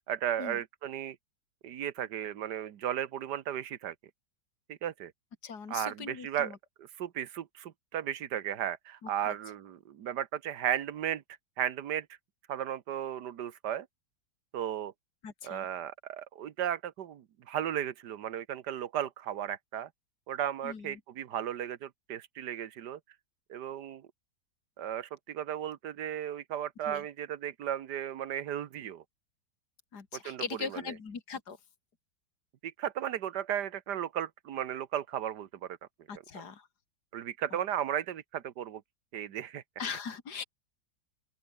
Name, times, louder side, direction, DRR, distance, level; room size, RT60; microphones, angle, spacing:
voice 1, 0.1-1.2 1.6-3.9 4.7-5.1 5.7-11.2 11.6-12.1 12.5-13.9 14.5-14.9 15.4-19.9 20.3-23.0 23.5-24.1 24.8-29.0 30.2-30.8 32.6-35.8 37.1-38.8 39.1-39.6, right 10 dB, 75° right, 1.7 m, -35 dB
voice 2, 5.4-6.6 9.3-9.4 15.2-15.7 20.6-20.9 26.9-27.0 29.9-31.6 36.1-36.7 39.8-40.4, left 6 dB, 70° left, 3.0 m, -40 dB
open air
omnidirectional pair, 1.8 m